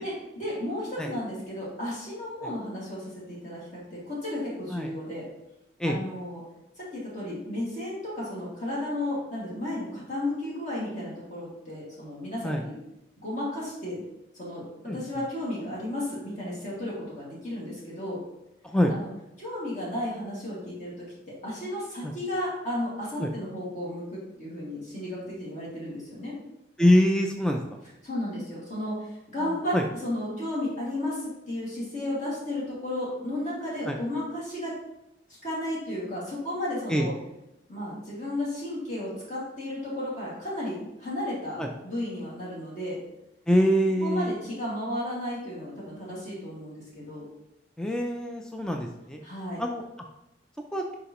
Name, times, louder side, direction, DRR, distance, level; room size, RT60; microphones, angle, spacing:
voice 1, 0.0-5.2 5.9-6.4 6.8-12.8 13.2-14.0 14.3-14.7 14.9-18.2 18.9-19.1 19.4-21.1 21.4-26.3 28.0-29.1 29.3-34.8 35.4-37.1 37.7-43.0 44.0-47.2 49.2-49.6, left 1 dB, 40° left, -7 dB, 2.0 m, -33 dB
voice 2, 26.8-27.6 29.4-29.8 33.9-34.0 36.9-37.1 41.6-41.7 43.5-44.3 47.8-49.2 49.6-49.8 50.7-50.8, equal, 5° left, 2 dB, 0.4 m, -24 dB
6.8 x 4.8 x 3.0 m, 0.88 s
head